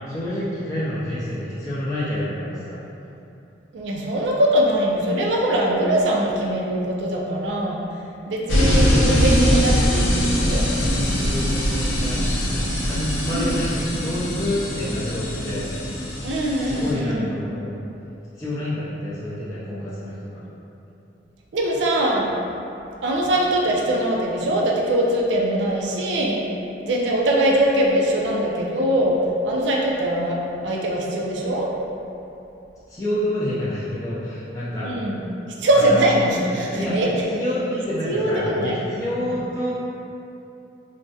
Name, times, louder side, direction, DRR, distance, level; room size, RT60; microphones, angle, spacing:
voice 1, 0.1-2.8 10.9-15.7 16.6-17.8 18.4-20.4 32.9-34.9 35.7-36.1 36.5-37.0 37.3-39.7, left 1 dB, 15° left, -11 dB, 0.3 m, -28 dB
voice 2, 3.7-7.8 8.3-10.6 13.3-13.6 16.2-17.3 21.5-22.3 23.0-26.4 26.8-29.2 29.4-31.7 34.8-35.2 35.5-37.1 38.0-38.8 39.2-39.3, right 1 dB, 70° right, -2 dB, 0.4 m, -22 dB
sound 1, 8.5-16.9, equal, 90° left, 0.5 m, -22 dB
3.4 x 2.1 x 2.7 m, 2.8 s
head